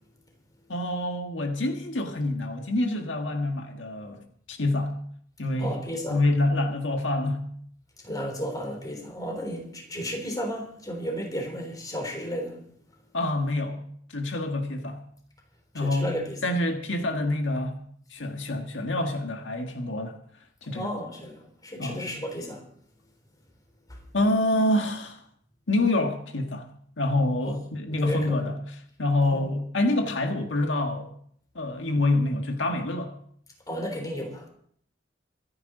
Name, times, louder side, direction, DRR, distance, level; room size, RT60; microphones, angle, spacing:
voice 1, 0.7-4.2 4.5-4.9 5.4-5.8 6.1-7.5 13.1-13.8 14.1-15.0 15.7-16.1 16.4-17.8 18.1-20.1 20.6-20.9 21.8-22.0 24.1-25.2 25.7-26.7 27.0-31.1 31.5-33.1, left 2 dB, 85° left, 1.7 m, -26 dB
voice 2, 5.6-6.2 8.0-12.6 15.7-16.4 20.7-22.6 23.9-24.0 27.4-27.6 27.9-28.5 29.3-29.5 33.7-34.5, equal, 20° left, 3.7 m, -33 dB
25.0 x 9.6 x 3.9 m
head